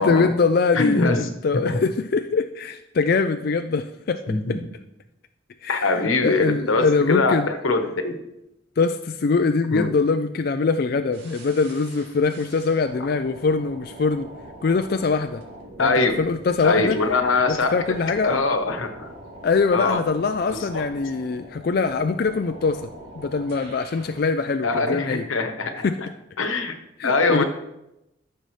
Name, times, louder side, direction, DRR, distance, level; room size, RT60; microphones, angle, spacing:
voice 1, 0.0-4.4 5.6-7.5 8.8-14.3 14.6-15.4 15.8-17.0 17.5-18.4 19.4-22.9 23.2-25.2 25.8-25.9 27.0-27.4, left 4 dB, 50° left, 8 dB, 0.4 m, -23 dB
voice 2, 0.7-1.2 1.5-1.8 4.3-4.6 5.7-8.2 9.7-9.9 15.8-16.2 16.6-17.8 18.2-19.1 19.7-20.0 20.5-20.8 24.6-25.9 26.4-26.7 27.0-27.4, left 3 dB, 85° left, 6 dB, 1.2 m, -22 dB
sound 1, 11.1-24.3, right 1 dB, 55° right, 2.8 m, -43 dB
14.0 x 6.7 x 3.2 m, 0.88 s
head